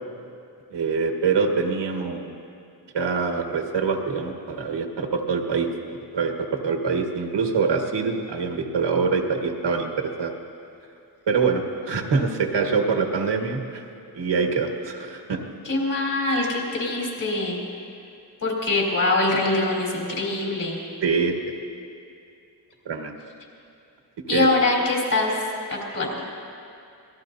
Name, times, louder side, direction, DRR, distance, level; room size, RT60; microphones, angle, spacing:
voice 1, 0.7-2.4 2.9-5.7 6.1-10.3 11.3-13.8 14.1-15.4 21.0-21.3 22.8-23.1 24.3-24.5, right 5 dB, 85° right, 3 dB, 1.6 m, -24 dB
voice 2, 15.6-17.6 18.4-20.8 24.3-25.3 25.7-26.1, left 2 dB, 50° left, -3 dB, 3.9 m, -23 dB
26.0 x 19.5 x 2.7 m, 2.5 s
wide cardioid pair, 165°, 41 cm